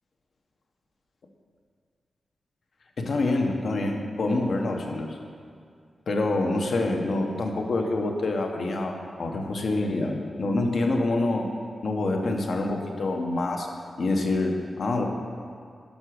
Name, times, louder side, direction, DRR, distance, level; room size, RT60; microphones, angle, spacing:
voice 1, 3.0-5.2 6.1-11.5 11.8-13.7 14.0-15.1, left 2 dB, 60° left, 2 dB, 1.1 m, -26 dB
11.0 x 6.1 x 6.5 m, 2.2 s
wide cardioid pair, 160°, 0 cm